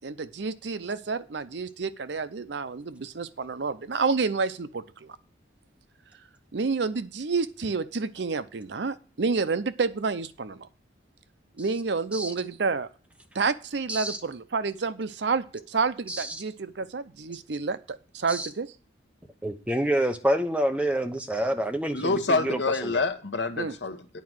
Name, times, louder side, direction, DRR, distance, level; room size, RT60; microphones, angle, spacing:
voice 1, 0.0-5.2 6.5-10.7 11.6-12.9 13.3-18.7 23.6-23.8, right 4 dB, 75° right, 0.6 m, -29 dB
voice 2, 16.1-16.4 18.3-18.5 19.4-23.0, right 1 dB, 5° right, 0.8 m, -28 dB
voice 3, 21.9-24.2, left 3 dB, 80° left, 1.0 m, -27 dB
9.4 x 4.7 x 7.8 m
head